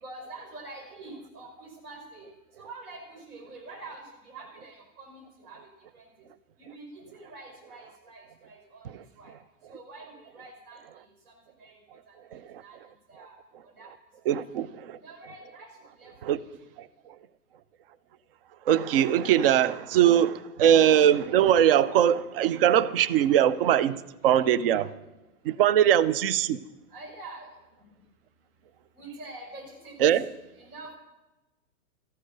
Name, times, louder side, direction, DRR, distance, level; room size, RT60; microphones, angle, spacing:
voice 1, 0.0-2.3 2.6-5.6 5.9-6.1 6.6-8.9 9.2-9.3 9.7-12.8 13.1-13.4 13.6-13.9 14.3-14.4 15.0-16.3 26.9-27.5 28.9-30.3 30.6-31.0, right 2 dB, 75° right, 5.8 m, -46 dB
voice 2, 14.3-15.0 16.2-16.4 18.7-24.0 24.2-24.9 25.4-26.6 30.0-30.3, right 10 dB, 40° right, 0.5 m, -21 dB
14.0 x 12.0 x 6.6 m
hypercardioid pair, 155°, 46 cm